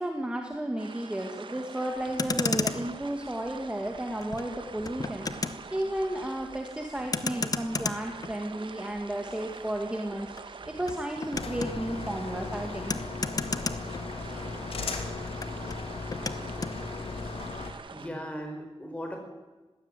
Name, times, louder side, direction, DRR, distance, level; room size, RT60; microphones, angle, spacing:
voice 1, 0.0-12.9, right 1 dB, 10° right, 3 dB, 1.8 m, -33 dB
sound 1, 0.8-18.1, right 5 dB, 55° right, 1.3 m, -45 dB
Motor vehicle (road), 2.0-14.6 14.9-16.8, left 4 dB, 40° left, 1.0 m, -35 dB
sound 2, 11.3-17.7, left 3 dB, 75° left, 2.9 m, -37 dB
voice 2, 17.9-19.2, equal, 15° left, 3 dB, 4.9 m, -37 dB
20.0 x 16.0 x 9.0 m, 1.2 s
wide cardioid pair, 165°, 10 cm